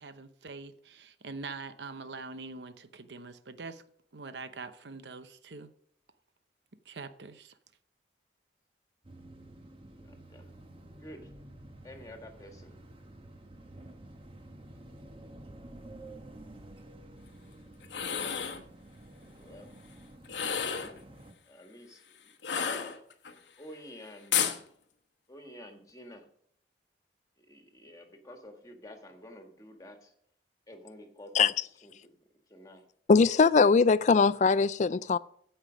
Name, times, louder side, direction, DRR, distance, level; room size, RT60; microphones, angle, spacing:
voice 1, 0.0-3.8 4.1-5.7 6.9-7.6, right 4 dB, 80° right, 0.8 m, -44 dB
sound 1, 9.0-21.3, right 1 dB, 30° right, 1.2 m, -50 dB
voice 2, 10.0-10.5 11.0-11.3 11.8-12.8 19.2-19.7 21.5-23.0 23.6-24.5 25.3-26.3 27.4-30.1 30.7-31.5 31.8-32.2 32.5-32.8, left 1 dB, 20° left, 1.7 m, -50 dB
sound 2, 17.8-18.6 20.2-21.0 22.4-23.3 24.3-24.6, left 7 dB, 90° left, 1.1 m, -31 dB
voice 3, 33.1-35.2, left 4 dB, 40° left, 0.4 m, -21 dB
15.0 x 5.6 x 5.1 m
head